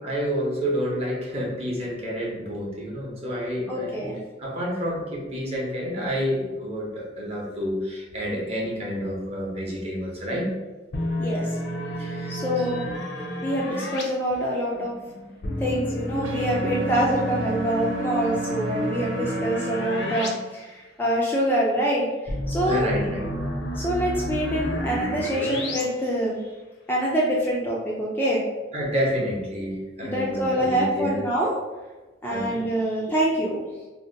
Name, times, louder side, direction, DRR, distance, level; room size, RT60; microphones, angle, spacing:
voice 1, 0.0-4.1 4.4-10.5 12.0-12.7 14.7-15.3 16.2-16.3 22.6-23.3 28.7-31.2 32.3-32.6, equal, 30° right, -3 dB, 0.7 m, -29 dB
voice 2, 3.7-4.2 11.2-11.6 12.3-12.9 13.4-15.0 15.6-22.9 23.7-26.4 26.9-28.4 30.0-31.5 32.2-33.6, equal, 10° left, -4 dB, 0.3 m, -25 dB
sound 1, 10.9-14.0 15.4-20.3 20.6-20.7 22.3-25.8, equal, 60° left, 0.5 m, -30 dB
sound 2, 16.2-20.3, right 2 dB, 75° right, 0.4 m, -33 dB
2.7 x 2.1 x 3.8 m, 1.2 s
head